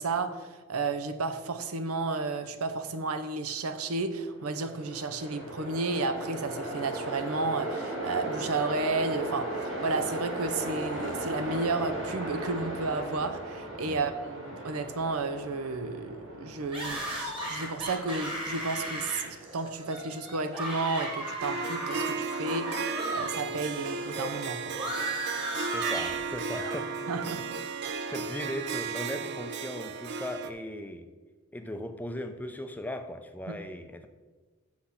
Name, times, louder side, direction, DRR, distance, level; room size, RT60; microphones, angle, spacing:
voice 1, 0.0-24.7 27.1-27.5 33.5-33.6, right 3 dB, 90° right, 10 dB, 0.7 m, -32 dB
Train, 4.3-21.5, right 1 dB, 70° right, 2.7 m, -37 dB
sound 1, 16.7-23.3 23.6-26.8, right 1 dB, 25° right, 1.7 m, -36 dB
Harp, 21.4-30.5, right 5 dB, 50° right, 0.5 m, -34 dB
voice 2, 25.7-26.9 27.6-31.1 31.5-34.1, left 1 dB, 10° left, 7 dB, 0.4 m, -38 dB
6.4 x 6.0 x 5.7 m, 1.3 s
head